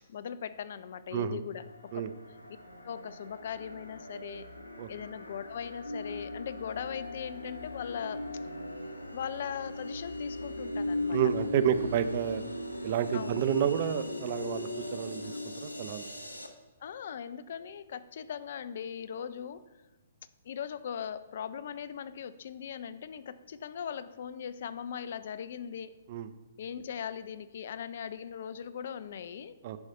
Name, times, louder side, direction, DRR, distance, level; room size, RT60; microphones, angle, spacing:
voice 1, 0.1-1.7 1.9-2.1 2.8-4.5 4.9-8.3 9.1-11.2 13.1-13.4 16.8-19.7 20.4-25.9 26.6-29.6, left 8 dB, 55° left, 15 dB, 0.4 m, -39 dB
sound 1, 1.5-16.5, left 2 dB, 90° left, 0.8 m, -39 dB
voice 2, 11.1-12.4 12.8-15.3 15.6-16.1 26.1-26.3 29.6-29.8, right 9 dB, 45° right, 12 dB, 0.5 m, -30 dB
10.5 x 4.8 x 4.3 m, 1.2 s
figure-of-eight pair, 120°, 0 cm